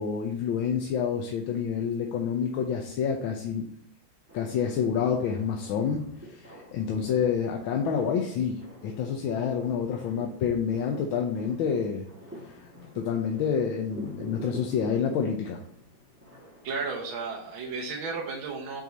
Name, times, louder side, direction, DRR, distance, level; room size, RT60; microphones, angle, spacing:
voice 1, 0.0-3.6 4.3-6.0 6.3-12.0 12.4-12.5 12.9-15.6, left 7 dB, 80° left, 2 dB, 1.5 m, -28 dB
sound 1, 4.3-17.0, equal, 5° right, 1.7 m, -47 dB
voice 2, 16.6-18.8, right 4 dB, 75° right, -1 dB, 1.7 m, -33 dB
7.1 x 4.5 x 4.0 m, 0.65 s
omnidirectional pair, 2.2 m